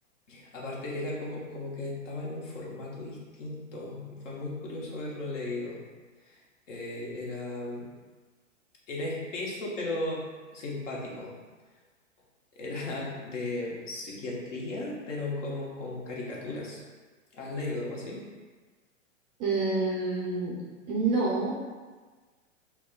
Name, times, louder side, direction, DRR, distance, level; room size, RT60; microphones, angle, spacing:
voice 1, 0.3-5.8 6.2-6.4 6.7-7.9 8.9-10.2 10.5-11.3 12.6-16.8 17.3-18.2, left 2 dB, 65° left, -4 dB, 1.2 m, -36 dB
voice 2, 19.4-20.6 20.9-21.5, right 3 dB, 20° right, -5 dB, 0.3 m, -27 dB
5.7 x 2.2 x 2.3 m, 1.4 s
hypercardioid pair, 115°, 38 cm